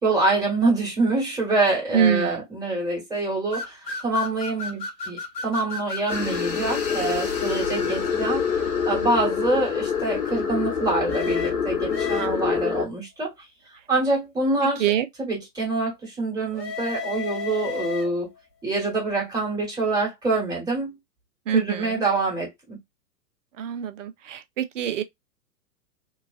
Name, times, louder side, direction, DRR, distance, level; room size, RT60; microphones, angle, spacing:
voice 1, 0.0-13.3 13.9-14.8 15.2-18.3 18.6-21.0 21.5-22.8, right 2 dB, 10° right, 1.4 m, -25 dB
voice 2, 1.9-2.4 12.2-12.5 14.8-15.1 21.5-22.0 23.6-25.0, right 9 dB, 50° right, 0.6 m, -25 dB
sound 1, 3.5-6.3 11.1-12.7 16.5-18.4, left 5 dB, 80° left, 1.1 m, -34 dB
sound 2, 6.1-12.9, left 6 dB, 60° left, 1.2 m, -26 dB
3.1 x 2.3 x 2.3 m
figure-of-eight pair, 105°, 49 cm